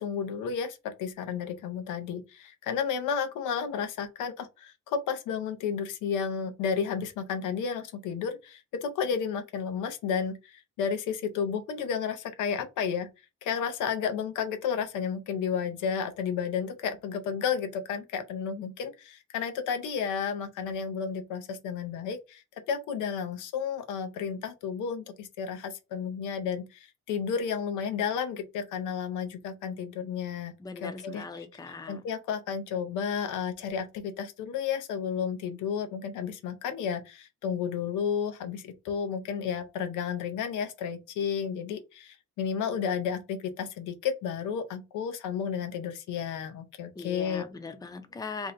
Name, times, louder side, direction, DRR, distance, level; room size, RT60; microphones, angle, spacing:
voice 1, 0.0-13.1 13.4-30.5 30.8-31.2 31.9-47.4, left 7 dB, 90° left, 0.6 m, -32 dB
voice 2, 30.6-32.0 47.0-48.5, left 4 dB, 15° left, 0.5 m, -40 dB
2.6 x 2.0 x 3.9 m
cardioid pair, 90°, 30 cm